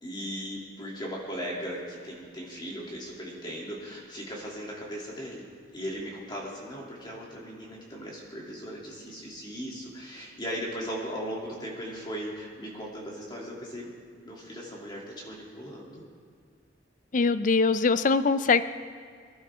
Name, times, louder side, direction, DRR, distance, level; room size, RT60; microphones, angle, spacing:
voice 1, 0.0-5.5 5.7-13.9 14.2-16.0, equal, 25° left, -3 dB, 2.9 m, -38 dB
voice 2, 17.1-18.6, left 4 dB, 40° left, 13 dB, 0.4 m, -22 dB
24.5 x 11.5 x 3.6 m, 2.1 s
head